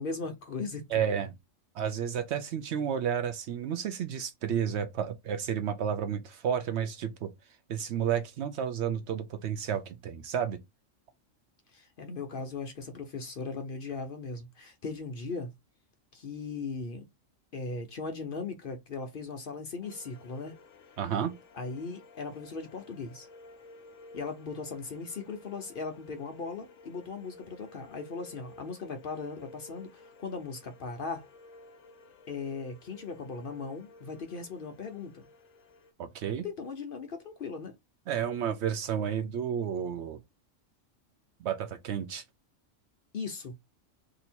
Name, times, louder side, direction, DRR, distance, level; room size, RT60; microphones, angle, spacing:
voice 1, 0.0-1.1 11.7-15.5 16.1-17.1 17.5-20.5 21.5-23.3 24.1-31.2 32.3-35.3 36.4-37.7 43.1-43.5, left 4 dB, 55° left, 0.7 m, -38 dB
voice 2, 0.9-1.3 1.7-7.3 7.7-10.6 21.0-21.3 36.0-36.5 38.1-40.2 41.4-42.2, right 8 dB, 65° right, 0.8 m, -31 dB
sound 1, 19.8-35.9, left 2 dB, 70° left, 1.0 m, -54 dB
2.8 x 2.7 x 4.2 m
omnidirectional pair, 1.3 m